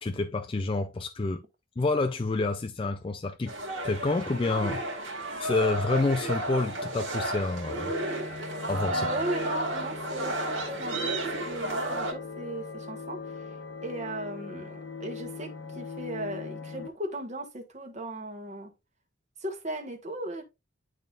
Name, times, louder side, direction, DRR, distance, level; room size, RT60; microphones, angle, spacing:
voice 1, 0.0-1.4 1.8-3.5 3.8-4.8 5.4-7.9 8.7-9.1, left 3 dB, 25° left, 0.3 m, -28 dB
sound 1, 3.5-12.1, right 1 dB, 70° right, 2.0 m, -32 dB
sound 2, 7.3-16.9, left 4 dB, 60° left, 0.9 m, -41 dB
voice 2, 8.9-13.5 13.8-18.7 19.4-20.4, right 1 dB, 35° right, 1.3 m, -36 dB
10.5 x 3.7 x 2.4 m
head